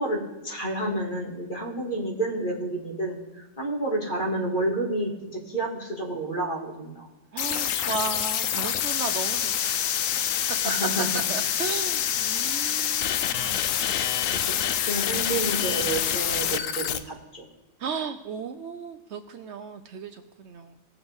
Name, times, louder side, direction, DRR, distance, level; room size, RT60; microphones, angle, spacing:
voice 1, 0.0-7.1 10.6-11.2 14.3-14.5 14.8-17.5, right 2 dB, 40° left, -1 dB, 2.2 m, -30 dB
voice 2, 7.3-9.8 11.3-13.6 17.8-20.8, right 5 dB, 65° right, 9 dB, 0.8 m, -35 dB
sound 1, 7.4-17.0, left 10 dB, 85° left, 1.0 m, -26 dB
18.0 x 7.3 x 3.5 m, 1.1 s
omnidirectional pair, 1.4 m